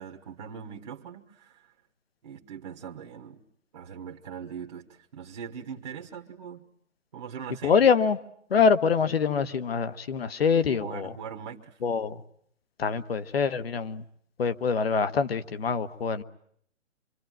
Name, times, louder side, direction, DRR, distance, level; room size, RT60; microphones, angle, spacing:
voice 1, 0.0-1.7 2.2-3.4 3.7-6.6 7.1-7.8 10.6-11.8, right 7 dB, 35° right, 1.5 m, -41 dB
voice 2, 7.6-8.2 8.5-11.1 11.8-12.2 12.8-14.0 14.4-16.2, left 6 dB, 50° left, 1.4 m, -24 dB
26.5 x 24.5 x 9.2 m
hypercardioid pair, 170°, 38 cm